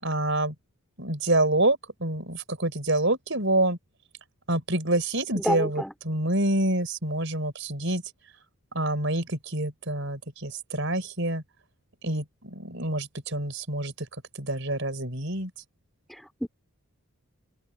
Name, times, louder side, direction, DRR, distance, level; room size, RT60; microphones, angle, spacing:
voice 1, 0.0-0.5 1.0-3.8 4.5-8.0 8.7-11.4 12.0-14.1 14.4-15.5, right 1 dB, 55° right, 6.6 m, -27 dB
voice 2, 5.3-5.9 16.1-16.5, equal, ahead, 4.5 m, -29 dB
open air
head